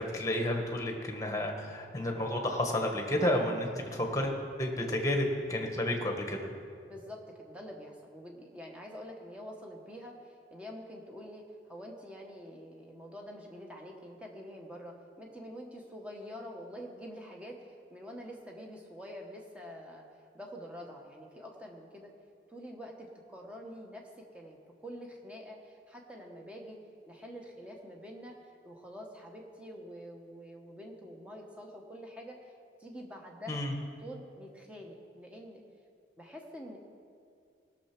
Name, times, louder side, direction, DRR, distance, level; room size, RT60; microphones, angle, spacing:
voice 1, 0.0-4.3 4.6-6.5 33.5-33.7, left 1 dB, 20° left, 2 dB, 1.3 m, -31 dB
voice 2, 6.8-20.0 20.3-22.1 22.5-26.8 27.1-28.4 28.6-32.5 32.8-33.6 34.0-35.6 36.2-36.8, equal, 5° right, 0 dB, 1.3 m, -46 dB
17.5 x 6.8 x 6.0 m, 2.4 s
head